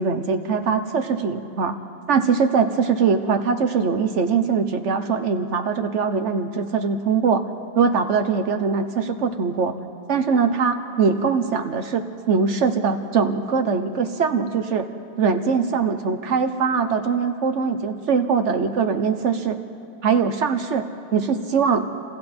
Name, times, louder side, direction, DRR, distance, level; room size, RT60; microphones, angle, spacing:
voice 1, 0.0-1.8 2.1-7.5 7.7-9.7 10.1-14.9 15.2-19.6 20.0-21.8, right 5 dB, 70° right, 7 dB, 1.2 m, -22 dB
29.5 x 27.0 x 4.3 m, 2.6 s
omnidirectional pair, 1.3 m